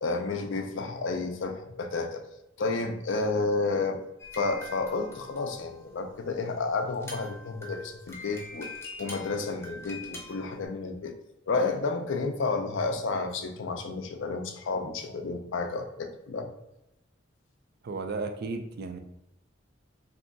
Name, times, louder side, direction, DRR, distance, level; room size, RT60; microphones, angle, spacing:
voice 1, 0.0-2.2 2.6-4.0 4.4-8.7 9.0-11.1 11.5-16.5, left 3 dB, 70° left, 5 dB, 0.5 m, -31 dB
sound 1, 4.2-5.9 6.5-6.6 6.9-10.6, left 3 dB, 15° left, 0.7 m, -43 dB
voice 2, 17.8-19.0, right 3 dB, 55° right, 6 dB, 0.4 m, -34 dB
2.7 x 2.3 x 3.8 m, 0.86 s
head